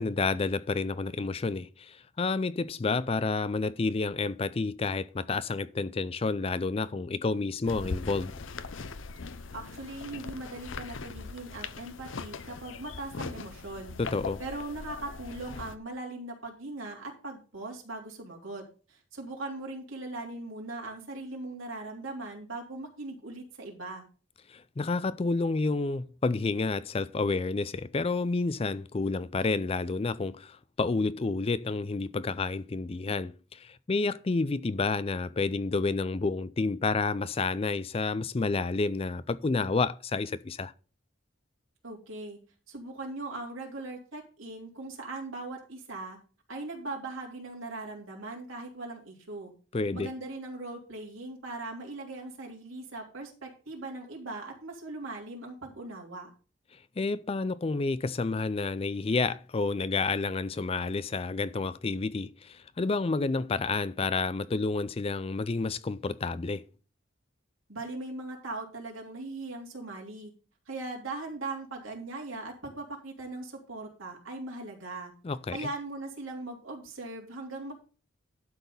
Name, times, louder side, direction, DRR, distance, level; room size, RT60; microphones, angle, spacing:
voice 1, 0.0-8.3 14.0-14.4 24.5-40.7 49.7-50.1 57.0-66.6 75.2-75.6, left 3 dB, 30° left, 0.4 m, -30 dB
sound 1, 7.7-15.8, left 4 dB, 70° left, 0.7 m, -40 dB
voice 2, 9.5-14.0 14.4-24.0 41.8-42.4 42.7-46.2 46.5-49.5 49.9-56.3 67.7-70.3 70.7-75.1 75.5-77.7, right 2 dB, 80° right, 3.3 m, -40 dB
12.0 x 4.2 x 6.8 m
head